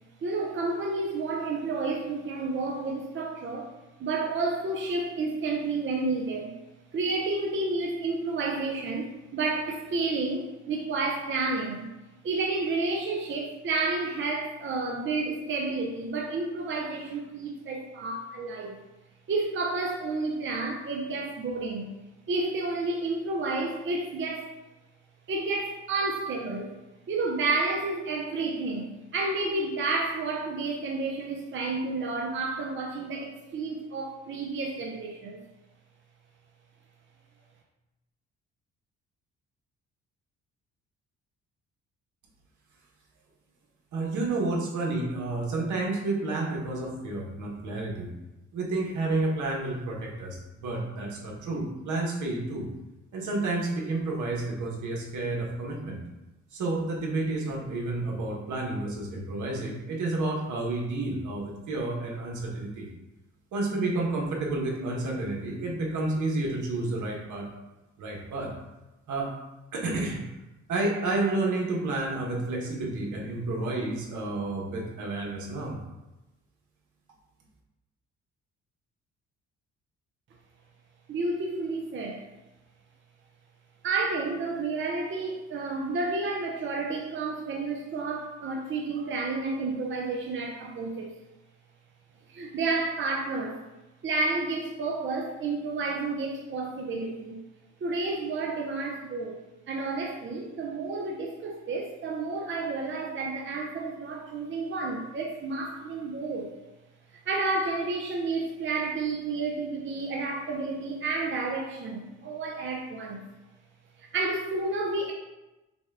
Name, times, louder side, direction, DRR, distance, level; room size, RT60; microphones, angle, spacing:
voice 1, 0.2-3.7 4.0-6.6 6.9-11.9 12.2-18.8 19.3-21.9 22.3-24.5 25.3-26.8 27.1-35.4 81.1-82.3 83.8-91.1 92.3-93.6 94.0-97.4 97.8-99.4 99.7-106.5 107.1-113.2 114.0-115.1, right 3 dB, 40° right, 0 dB, 0.7 m, -30 dB
voice 2, 43.9-48.1 48.5-52.7 53.1-56.0 56.5-62.9 63.5-67.5 68.0-68.5 69.1-69.3 69.7-70.2 70.7-75.8, right 2 dB, 75° right, -1 dB, 1.2 m, -30 dB
6.0 x 2.3 x 3.5 m, 1.0 s
cardioid pair, 90°, 30 cm